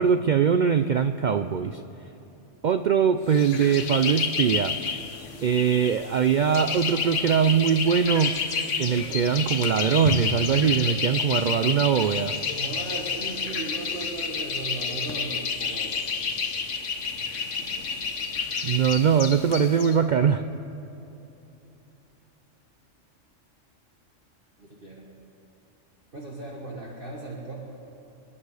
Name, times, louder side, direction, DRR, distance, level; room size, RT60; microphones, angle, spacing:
voice 1, 0.0-1.8 2.6-5.0 5.4-8.3 8.8-12.3 18.6-20.4, right 7 dB, 75° right, 8 dB, 0.4 m, -22 dB
sound 1, 3.3-19.9, left 5 dB, 70° left, 1.3 m, -30 dB
Drum, 10.1-13.6, left 10 dB, 85° left, 1.0 m, -36 dB
voice 2, 12.6-15.9 24.6-25.0 26.1-27.6, right 3 dB, 45° right, -3 dB, 1.7 m, -37 dB
27.5 x 10.0 x 4.8 m, 2.9 s
omnidirectional pair, 1.3 m